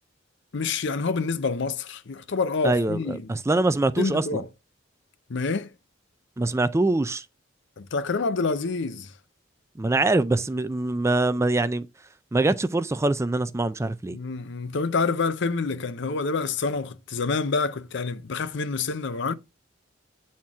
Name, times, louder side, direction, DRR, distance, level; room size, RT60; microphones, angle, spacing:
voice 1, 0.5-3.3 4.0-4.5 5.3-5.7 7.8-9.1 14.1-19.3, left 4 dB, 65° left, 0.6 m, -27 dB
voice 2, 2.6-4.4 6.4-7.2 9.8-11.9 12.3-14.2, right 2 dB, 15° right, 0.4 m, -24 dB
8.9 x 4.4 x 3.5 m
head